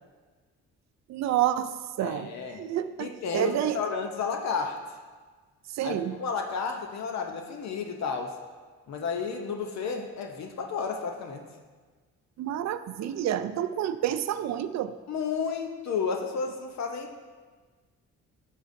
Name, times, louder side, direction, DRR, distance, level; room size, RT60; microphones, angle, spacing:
voice 1, 1.1-3.8 5.7-6.2 12.4-15.0, right 11 dB, 65° right, 12 dB, 0.5 m, -29 dB
voice 2, 2.0-2.6 3.0-4.8 5.8-8.4 8.9-11.5 15.1-17.2, left 5 dB, 65° left, 3 dB, 0.8 m, -32 dB
9.8 x 6.8 x 2.6 m, 1.4 s
cardioid pair, 90°, 30 cm